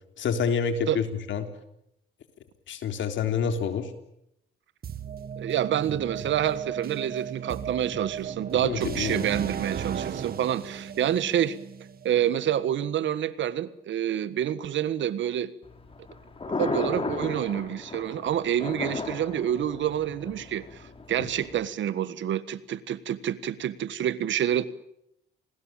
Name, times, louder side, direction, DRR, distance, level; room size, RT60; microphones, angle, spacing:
voice 1, 0.2-1.5 2.7-3.9 8.6-9.2, left 6 dB, 70° left, 7 dB, 3.6 m, -28 dB
sound 1, 4.8-12.7, right 7 dB, 50° right, 1.9 m, -36 dB
voice 2, 5.4-11.6 12.0-15.5 16.6-24.7, right 10 dB, 70° right, 16 dB, 1.6 m, -28 dB
Thunder, 15.6-21.7, left 3 dB, 30° left, 5.3 m, -35 dB
28.5 x 20.5 x 9.0 m, 0.80 s
cardioid pair, 90°, 20 cm